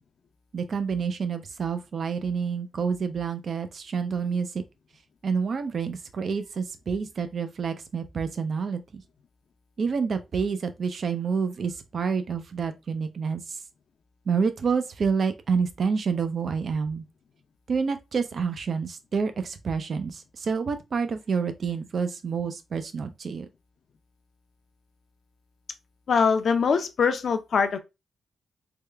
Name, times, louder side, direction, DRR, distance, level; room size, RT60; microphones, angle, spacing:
voice 1, 0.5-4.6 5.2-9.0 9.8-13.6 14.3-17.1 17.7-23.5, right 5 dB, 50° right, 0.5 m, -28 dB
voice 2, 26.1-27.8, left 5 dB, 55° left, 0.6 m, -23 dB
3.5 x 2.2 x 3.2 m
cardioid pair, 115°, 0 cm